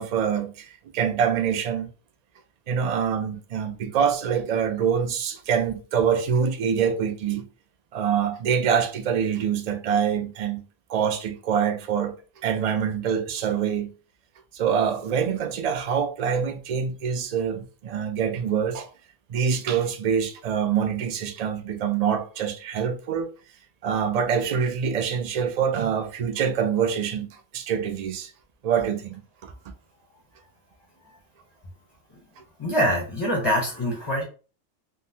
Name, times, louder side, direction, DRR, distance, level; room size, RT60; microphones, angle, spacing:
voice 1, 0.0-1.9 2.7-7.5 7.9-10.6 10.9-12.2 12.4-13.9 14.5-18.9 19.3-23.3 23.8-28.3 28.6-29.1 29.4-29.5, right 7 dB, 60° right, 0.4 m, -25 dB
voice 2, 32.6-34.2, equal, 25° left, 0.6 m, -24 dB
3.7 x 2.1 x 2.7 m
omnidirectional pair, 1.2 m